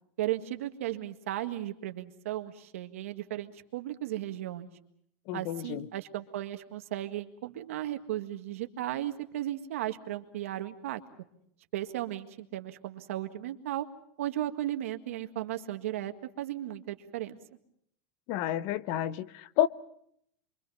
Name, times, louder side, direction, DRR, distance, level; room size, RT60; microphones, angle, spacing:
voice 1, 0.2-4.7 5.3-11.0 11.7-13.9 14.2-17.4, right 13 dB, 90° right, 1.8 m, -35 dB
voice 2, 5.3-5.9 18.3-19.7, left 12 dB, 50° left, 0.9 m, -30 dB
27.5 x 24.0 x 5.6 m
supercardioid pair, 150°, 7 cm